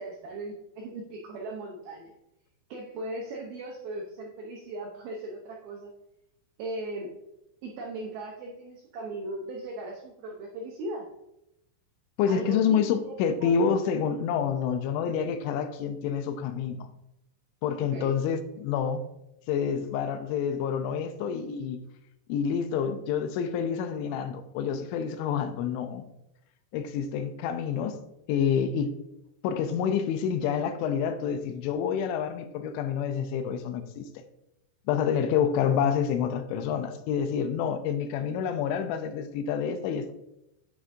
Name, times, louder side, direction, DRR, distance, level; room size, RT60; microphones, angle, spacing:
voice 1, 0.0-2.1 2.7-5.9 6.6-7.2 7.6-11.1 12.3-13.2 13.4-13.8 17.8-18.2, right 2 dB, 80° right, 2.2 m, -38 dB
voice 2, 12.2-16.9 17.6-19.1 19.5-21.8 22.3-26.1 26.7-28.0 28.3-28.9 29.4-34.1 34.9-40.1, left 7 dB, 85° left, 2.9 m, -28 dB
9.8 x 6.0 x 2.7 m
omnidirectional pair, 5.4 m